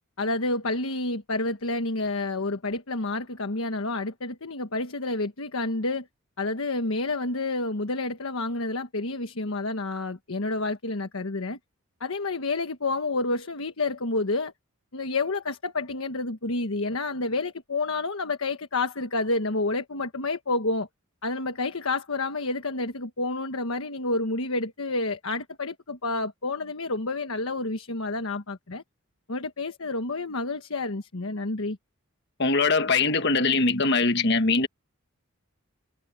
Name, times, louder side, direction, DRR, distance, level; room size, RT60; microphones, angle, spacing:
voice 1, 0.2-6.1 6.4-11.6 12.0-14.5 14.9-20.9 21.2-28.8 29.3-31.8, left 2 dB, 75° left, 1.3 m, -29 dB
voice 2, 32.4-34.7, left 3 dB, 50° left, 1.5 m, -22 dB
head